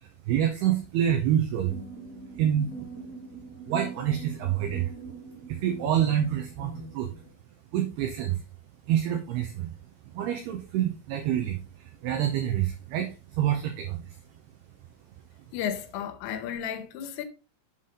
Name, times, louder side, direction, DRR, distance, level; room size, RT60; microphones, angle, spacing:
voice 1, 0.0-1.8 2.4-2.7 3.7-4.9 5.5-7.1 7.7-8.4 8.9-9.7 10.1-14.1, right 10 dB, 80° right, 2.3 m, -27 dB
sound 1, 1.7-7.3, right 4 dB, 5° left, 2.2 m, -42 dB
voice 2, 15.5-17.3, left 9 dB, 85° left, 3.5 m, -33 dB
8.0 x 5.8 x 3.7 m
omnidirectional pair, 5.6 m